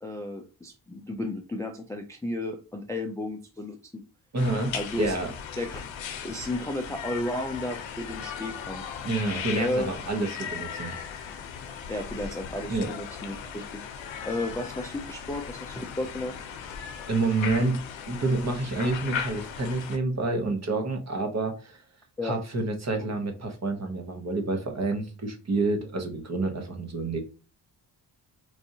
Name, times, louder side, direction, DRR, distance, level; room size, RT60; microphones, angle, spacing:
voice 1, 0.0-3.8 4.7-5.2 5.6-5.9 6.2-8.8 9.6-9.9 11.9-13.8 14.2-16.4 16.7-16.8 22.2-22.4, left 1 dB, 10° left, 3 dB, 0.4 m, -33 dB
voice 2, 4.3-5.3 9.0-10.9 12.7-12.9 16.8-17.8 18.1-21.8 22.2-27.2, right 2 dB, 35° right, 4 dB, 1.0 m, -28 dB
sound 1, 4.4-20.0, left 7 dB, 85° left, 0.7 m, -37 dB
4.7 x 2.6 x 2.7 m, 0.34 s
wide cardioid pair, 120°, 44 cm